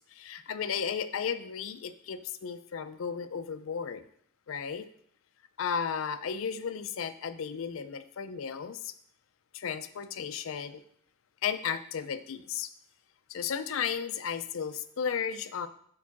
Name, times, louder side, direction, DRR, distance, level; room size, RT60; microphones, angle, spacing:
voice 1, 0.1-4.0 4.5-4.9 5.6-8.9 9.5-10.8 11.4-12.7 13.3-15.7, left 7 dB, 75° left, 11 dB, 0.4 m, -34 dB
4.7 x 4.6 x 5.9 m, 0.64 s
head